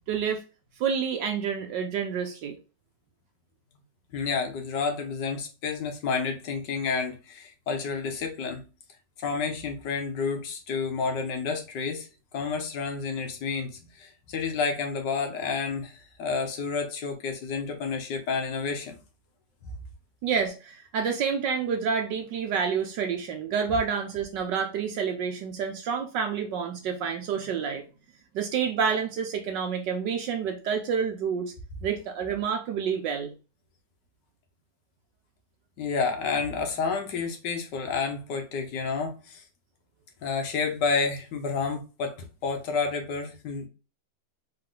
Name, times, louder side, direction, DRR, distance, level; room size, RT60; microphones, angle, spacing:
voice 1, 0.1-0.4 0.8-2.6 20.2-27.8 28.3-31.5 31.8-33.3, right 6 dB, 75° right, 1.4 m, -28 dB
voice 2, 4.1-8.7 9.2-12.1 12.3-18.9 35.8-39.4 40.2-43.7, left 5 dB, 70° left, 1.7 m, -30 dB
4.1 x 3.4 x 3.7 m
omnidirectional pair, 2.0 m